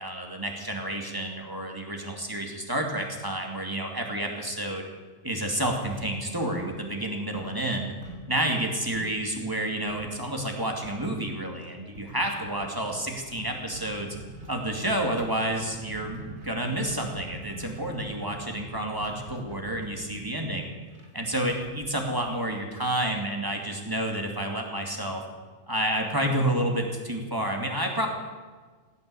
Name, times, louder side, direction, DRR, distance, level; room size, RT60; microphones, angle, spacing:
voice 1, 0.0-4.9 5.2-7.9 8.3-14.1 14.5-20.7 21.1-25.2 25.7-28.1, right 1 dB, 20° right, 2 dB, 2.5 m, -30 dB
sound 1, 5.9-7.1 7.3-9.2 9.9-10.2 10.5-10.6 10.8-11.2 11.9-22.7, right 1 dB, 80° right, 2.6 m, -44 dB
17.5 x 9.6 x 8.7 m, 1.4 s
omnidirectional pair, 1.1 m